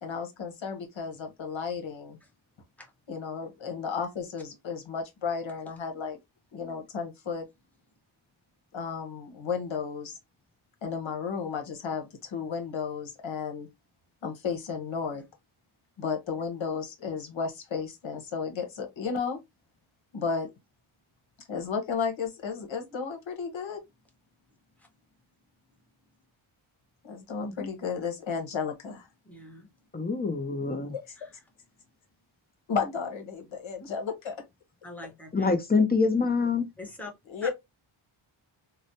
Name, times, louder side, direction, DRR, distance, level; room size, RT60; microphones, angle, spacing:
voice 1, 0.0-2.2 3.1-6.2 6.5-7.5 8.7-10.2 10.8-13.7 14.2-15.2 16.0-19.4 20.1-20.5 21.5-23.8 27.0-29.1 31.1-31.2 32.7-34.3 37.3-37.5, left 5 dB, 65° left, 1.1 m, -33 dB
voice 2, 29.2-29.7 31.2-31.3 34.8-35.5 36.8-37.1 37.4-37.5, left 2 dB, 5° left, 1.0 m, -43 dB
voice 3, 29.9-30.9 35.3-36.6, left 4 dB, 20° left, 0.6 m, -25 dB
3.1 x 2.1 x 2.7 m
wide cardioid pair, 85°, 50 cm